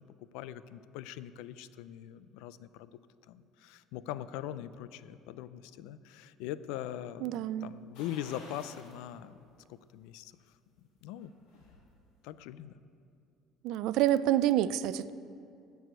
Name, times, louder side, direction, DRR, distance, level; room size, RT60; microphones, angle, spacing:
voice 1, 0.0-2.9 3.3-9.4 9.7-10.3 11.0-11.3 12.2-12.7, left 11 dB, 80° left, 15 dB, 0.4 m, -42 dB
voice 2, 7.2-7.7 13.6-15.1, right 12 dB, 60° right, 16 dB, 0.3 m, -27 dB
sound 1, 7.9-9.0 9.4-9.5 11.0-11.8 12.2-12.3, left 2 dB, 60° left, 2.5 m, -52 dB
13.5 x 4.7 x 8.1 m, 2.5 s
cardioid pair, 175°, 0 cm